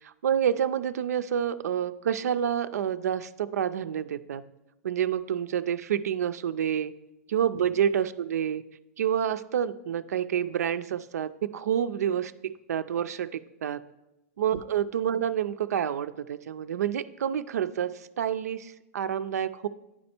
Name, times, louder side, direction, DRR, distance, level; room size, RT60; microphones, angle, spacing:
voice 1, 0.0-4.4 4.8-6.9 7.3-8.6 9.0-13.8 14.4-19.7, right 9 dB, 90° right, 11 dB, 0.4 m, -28 dB
9.5 x 4.3 x 4.3 m, 0.95 s
hypercardioid pair, 140°, 8 cm